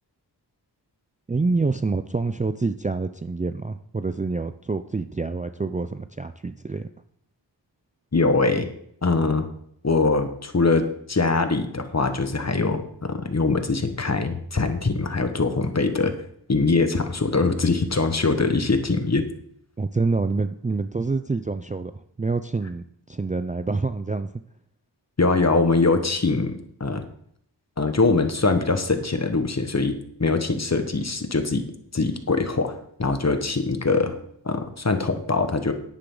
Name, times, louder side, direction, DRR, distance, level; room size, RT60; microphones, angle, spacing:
voice 1, 1.3-6.9 19.8-24.3, right 3 dB, 20° right, 9 dB, 0.4 m, -27 dB
voice 2, 8.1-8.7 9.0-9.4 9.8-16.1 16.5-19.2 25.2-27.0 27.8-31.6 31.9-34.1 34.4-35.7, left 3 dB, 35° left, 8 dB, 1.4 m, -22 dB
10.0 x 9.8 x 3.9 m, 0.69 s
wide cardioid pair, 70°, 43 cm